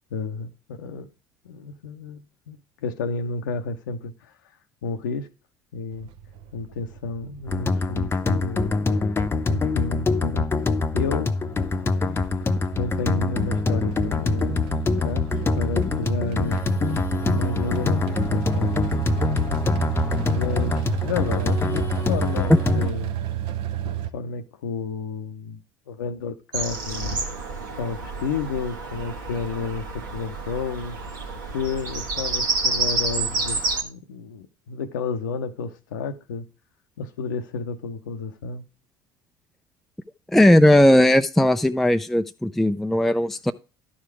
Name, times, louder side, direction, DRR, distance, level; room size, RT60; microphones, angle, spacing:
voice 1, 0.1-1.1 1.4-2.6 2.8-4.3 4.8-5.3 5.7-6.1 6.5-8.7 9.1-9.2 9.5-10.5 10.9-11.3 12.0-12.3 12.8-14.7 15.0-15.3 15.5-16.6 17.3-18.8 20.3-23.1 23.8-25.6 25.9-27.2 27.8-31.0 31.4-36.5 37.0-38.6, left 4 dB, 80° left, 0.7 m, -31 dB
sound 1, 5.9-24.1, right 11 dB, 60° right, 0.7 m, -32 dB
sound 2, 7.5-22.9, left 3 dB, 25° left, 0.7 m, -24 dB
Bird vocalization bird call bird song, 26.5-33.8, right 3 dB, 80° right, 1.5 m, -29 dB
voice 2, 40.3-43.5, left 1 dB, ahead, 0.4 m, -17 dB
11.5 x 5.0 x 4.7 m
hypercardioid pair, 65°, 10 cm